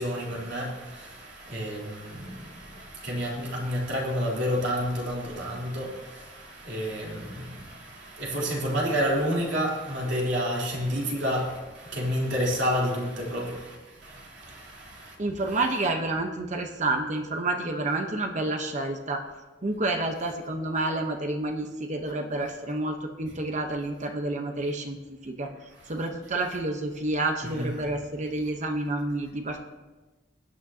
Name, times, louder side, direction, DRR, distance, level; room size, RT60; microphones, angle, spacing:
voice 1, 0.0-13.8 14.0-15.1 27.5-27.7, equal, 70° right, 3.4 m, -30 dB
voice 2, 15.2-19.2 19.6-25.5 25.9-29.7, right 2 dB, 40° right, 0.9 m, -29 dB
20.5 x 9.1 x 2.8 m
head